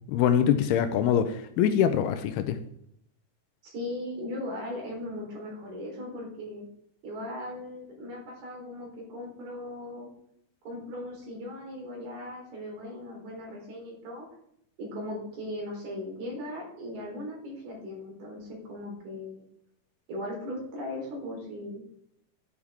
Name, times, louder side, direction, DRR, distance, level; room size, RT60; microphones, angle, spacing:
voice 1, 0.1-2.6, left 9 dB, 80° left, 9 dB, 2.5 m, -24 dB
voice 2, 3.6-6.6 7.0-10.1 10.6-14.2 14.8-19.5 20.1-21.8, left 1 dB, 70° right, -2 dB, 5.8 m, -38 dB
12.0 x 9.4 x 3.6 m, 0.71 s
omnidirectional pair, 4.7 m